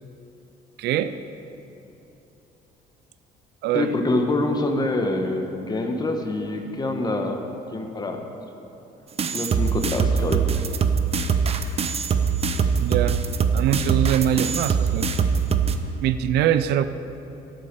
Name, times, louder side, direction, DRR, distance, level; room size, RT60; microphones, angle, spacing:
voice 1, 0.8-1.2 3.6-3.9 12.8-13.2 13.5-15.1 16.0-16.8, right 11 dB, 75° right, 12 dB, 0.5 m, -23 dB
voice 2, 3.7-7.4 7.7-8.2 9.3-10.6, left 2 dB, 25° left, 4 dB, 1.3 m, -25 dB
sound 1, 9.2-15.8, right 6 dB, 35° right, 0.7 m, -22 dB
11.0 x 9.0 x 6.7 m, 2.9 s
cardioid pair, 110°, 17 cm